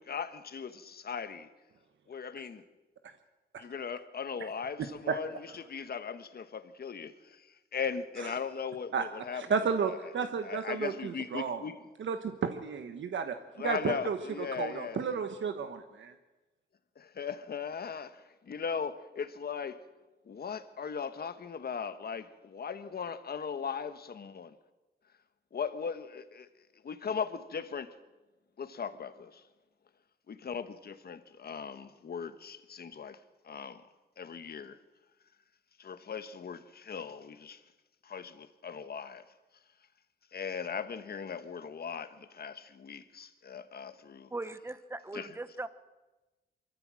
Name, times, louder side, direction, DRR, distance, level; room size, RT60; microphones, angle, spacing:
voice 1, 0.0-1.5 2.1-2.6 3.6-9.4 9.9-11.8 13.6-15.0 17.0-19.8 20.2-24.6 25.5-26.5 26.8-27.9 28.6-29.4 30.3-33.2 33.4-33.8 34.2-34.8 35.8-37.6 38.0-39.3 40.3-44.3 45.1-45.4, left 6 dB, 55° left, 1.3 m, -38 dB
voice 2, 9.3-11.6 12.0-13.3 13.6-14.2 14.6-16.1, right 6 dB, 80° right, 1.3 m, -32 dB
voice 3, 44.3-45.7, right 2 dB, 15° right, 1.0 m, -39 dB
24.5 x 14.5 x 7.6 m
wide cardioid pair, 125°, 19 cm